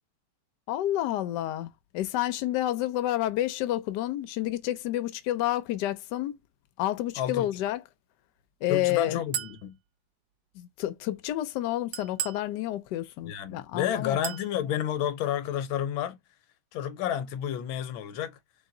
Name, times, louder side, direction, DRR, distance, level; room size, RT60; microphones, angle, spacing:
voice 1, 0.7-6.4 6.8-7.9 8.6-9.2 10.5-14.2, left 14 dB, 70° left, 1.1 m, -29 dB
voice 2, 7.2-7.5 8.7-9.8 13.3-16.2 16.7-18.4, left 10 dB, 85° left, 1.5 m, -30 dB
Chink clink, 9.3-9.6 11.9-12.5 14.2-14.5, right 10 dB, 75° right, 1.2 m, -34 dB
3.5 x 3.0 x 3.7 m
omnidirectional pair, 2.2 m